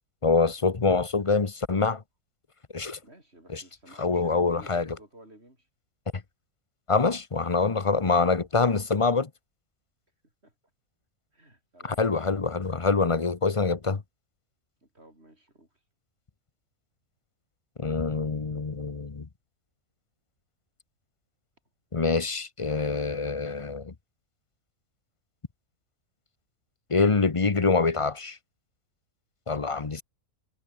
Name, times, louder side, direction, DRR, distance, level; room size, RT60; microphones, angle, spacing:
voice 1, 0.2-2.0 2.7-3.0 3.5-3.6 4.0-4.9 6.9-9.3 12.0-14.0 17.8-19.3 21.9-23.9 26.9-28.4 29.5-30.0, left 4 dB, 25° left, 0.8 m, -25 dB
voice 2, 3.0-5.7 10.4-10.5 11.3-12.0 14.8-15.8, right 1 dB, 40° right, 7.9 m, -54 dB
omnidirectional pair, 1.6 m